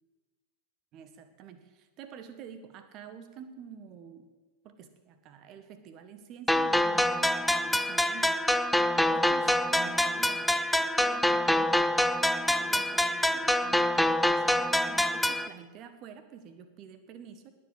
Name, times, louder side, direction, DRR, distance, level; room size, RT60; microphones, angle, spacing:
voice 1, 0.9-4.3 4.6-11.8 12.4-17.5, right 8 dB, 35° right, 10 dB, 1.6 m, -48 dB
sound 1, 6.5-15.5, left 1 dB, ahead, 0.5 m, -26 dB
19.5 x 8.0 x 7.6 m, 1.3 s
figure-of-eight pair, 90°, 0 cm